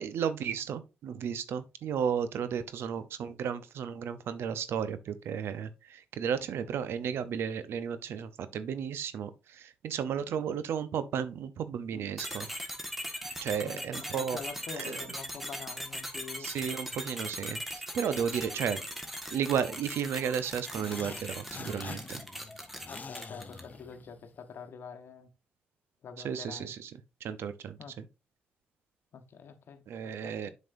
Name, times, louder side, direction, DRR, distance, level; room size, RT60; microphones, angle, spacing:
voice 1, 0.0-12.5 13.4-14.4 14.8-15.0 16.4-18.8 19.3-22.2 26.2-26.9 27.2-28.0 29.9-30.5, right 7 dB, 75° right, 0.7 m, -33 dB
sound 1, 12.2-23.8, equal, 5° right, 1.5 m, -40 dB
voice 2, 13.6-16.5 22.9-25.3 26.0-26.7 27.8-28.0 29.1-30.5, left 6 dB, 65° left, 1.0 m, -46 dB
sound 2, 20.7-24.4, left 5 dB, 40° left, 0.5 m, -46 dB
7.5 x 5.3 x 2.6 m
supercardioid pair, 60°, 4 cm